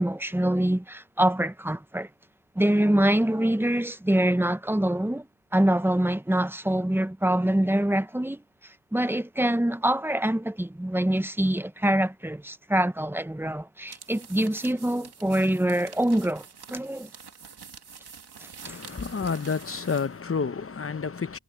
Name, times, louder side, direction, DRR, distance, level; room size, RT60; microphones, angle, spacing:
voice 1, 0.0-2.1 2.6-5.3 5.5-17.1 18.4-18.8, right 1 dB, 5° right, 0.7 m, -25 dB
sound 1, 13.8-20.2, right 6 dB, 70° right, 2.3 m, -47 dB
voice 2, 18.6-21.4, left 5 dB, 35° left, 0.9 m, -30 dB
wide cardioid pair, 85°, 40 cm